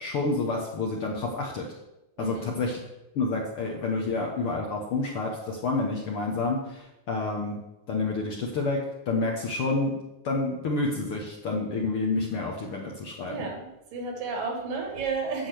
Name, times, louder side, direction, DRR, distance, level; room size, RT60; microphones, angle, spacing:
voice 1, 0.0-1.7 2.2-2.8 3.1-7.6 7.9-8.8 9.1-9.9 10.2-13.4, left 3 dB, 60° left, 0 dB, 1.5 m, -29 dB
voice 2, 2.2-2.5 13.3-15.5, right 4 dB, 85° right, 2 dB, 3.7 m, -32 dB
8.5 x 6.3 x 7.7 m, 0.93 s
omnidirectional pair, 3.8 m